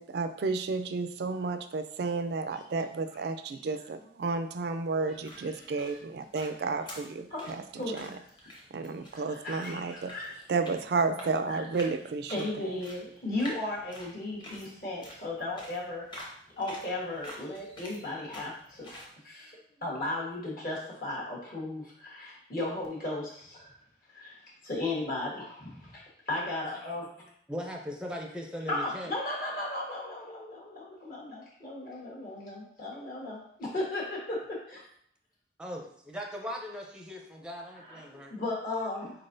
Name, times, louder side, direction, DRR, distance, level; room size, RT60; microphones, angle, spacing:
voice 1, 0.0-8.1 8.7-10.1 10.5-12.7, right 4 dB, 65° right, 9 dB, 0.3 m, -32 dB
sound 1, 5.0-19.1, equal, 25° left, 0.9 m, -49 dB
voice 2, 5.1-6.0 7.3-7.5 7.8-8.5 9.1-10.5 11.5-11.6 12.3-16.1 16.6-23.7 24.1-24.3 24.6-27.3 28.7-34.8 37.7-38.0 38.3-39.1, left 2 dB, 50° left, -4 dB, 1.3 m, -36 dB
voice 3, 27.5-29.1 35.6-38.3, equal, 5° right, 1 dB, 0.5 m, -39 dB
4.4 x 4.0 x 2.6 m, 0.65 s
head